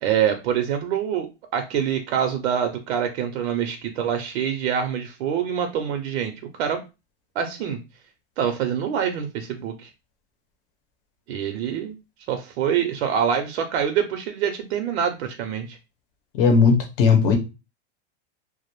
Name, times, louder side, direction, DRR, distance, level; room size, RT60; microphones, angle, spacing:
voice 1, 0.0-6.8 7.3-7.8 8.4-9.9 11.3-12.0 12.3-15.8, right 8 dB, 80° right, 0.6 m, -25 dB
voice 2, 16.4-17.4, left 5 dB, 55° left, 0.7 m, -17 dB
2.2 x 2.0 x 2.9 m
supercardioid pair, 150°, 32 cm